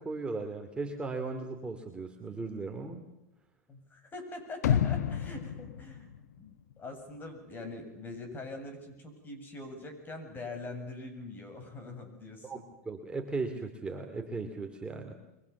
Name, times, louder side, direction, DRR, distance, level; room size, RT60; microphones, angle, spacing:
voice 1, 0.0-3.0 12.4-12.6 12.9-15.1, right 3 dB, 10° right, 3 dB, 2.5 m, -37 dB
voice 2, 3.7-6.1 6.4-12.6, left 2 dB, 20° left, 6 dB, 7.7 m, -43 dB
sound 1, 4.6-6.8 7.1-7.2, left 9 dB, 80° left, 1.1 m, -30 dB
29.0 x 23.5 x 7.2 m, 0.94 s
hypercardioid pair, 125°, 9 cm